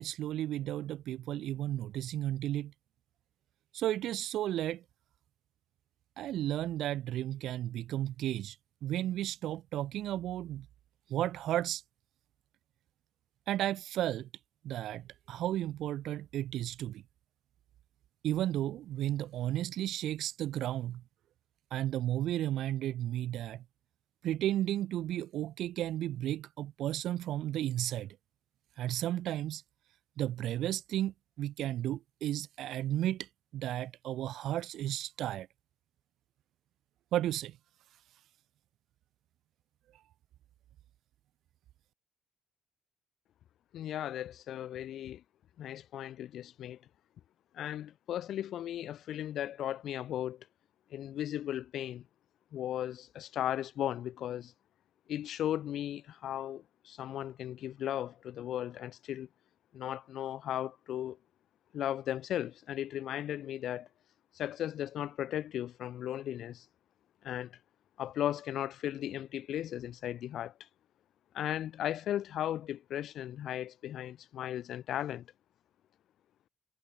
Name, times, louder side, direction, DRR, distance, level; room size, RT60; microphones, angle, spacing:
voice 1, 0.0-2.7 3.7-4.8 6.2-8.5 8.8-10.7 11.1-11.8 13.5-14.3 14.6-17.0 18.2-21.0 21.7-23.6 24.2-28.2 28.8-29.6 30.2-35.5 37.1-37.6, right 13 dB, 75° right, 1.6 m, -33 dB
voice 2, 43.7-45.2 45.6-46.8 47.5-50.5 50.9-52.0 52.5-54.5 55.1-59.3 59.7-61.2 61.7-63.9 64.3-66.7 67.2-67.5 68.0-70.5 71.3-75.3, left 11 dB, 75° left, 2.6 m, -36 dB
supercardioid pair, 70°, 0 cm